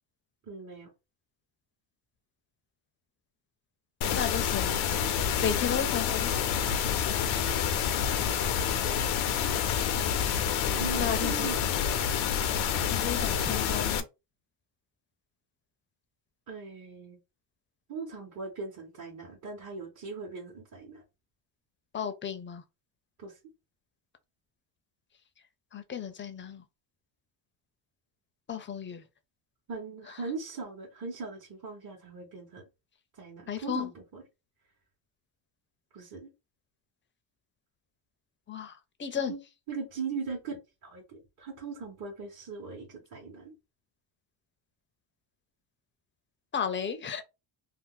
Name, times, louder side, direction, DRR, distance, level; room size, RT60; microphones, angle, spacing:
voice 1, 0.5-0.9 7.9-9.0 10.7-11.7 16.5-17.2 17.9-21.0 23.2-23.4 29.7-32.6 33.2-34.2 35.9-36.3 39.3-39.4 39.7-40.6 40.8-43.5, right 4 dB, 40° right, 1.1 m, -40 dB
sound 1, 4.0-14.0, left 8 dB, 85° left, 0.7 m, -28 dB
voice 2, 4.1-4.9 5.3-6.3 10.9-11.5 12.9-14.1 21.9-22.6 25.7-26.6 28.5-29.0 30.1-30.2 33.5-33.9 38.5-39.3 46.5-47.2, left 7 dB, 25° left, 0.5 m, -34 dB
2.7 x 2.1 x 3.6 m
cardioid pair, 110°, 46 cm